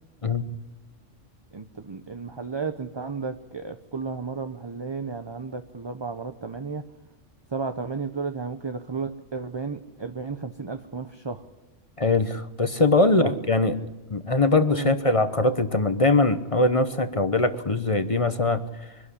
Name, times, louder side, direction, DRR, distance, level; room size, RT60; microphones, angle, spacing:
voice 1, 1.5-6.8 7.5-11.4 13.2-13.4 14.7-14.9, right 4 dB, 25° right, 7 dB, 0.8 m, -33 dB
voice 2, 12.0-13.8 14.1-18.6, left 2 dB, 30° left, 10 dB, 1.0 m, -22 dB
24.0 x 12.5 x 10.0 m, 1.1 s
omnidirectional pair, 1.3 m